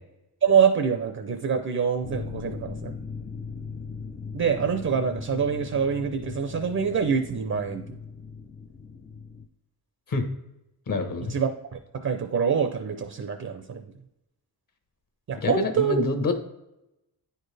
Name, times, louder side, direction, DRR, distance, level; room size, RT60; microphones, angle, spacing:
voice 1, 0.4-2.9 4.3-8.0 11.3-13.9 15.3-16.0, right 6 dB, 40° right, 7 dB, 0.6 m, -25 dB
sound 1, 2.0-9.5, left 5 dB, 20° left, 0.4 m, -39 dB
voice 2, 10.9-11.3 15.4-16.4, left 3 dB, 55° left, 6 dB, 1.1 m, -27 dB
9.3 x 4.4 x 3.3 m, 0.89 s
wide cardioid pair, 120°, 41 cm